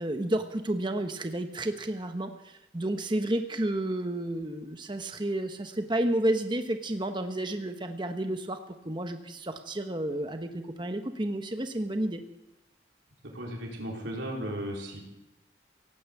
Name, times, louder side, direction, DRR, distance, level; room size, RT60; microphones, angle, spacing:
voice 1, 0.0-8.6 8.8-12.2, right 1 dB, 25° right, 6 dB, 0.9 m, -31 dB
voice 2, 13.3-15.0, equal, 75° right, -1 dB, 4.1 m, -35 dB
17.5 x 10.0 x 8.3 m, 0.91 s
head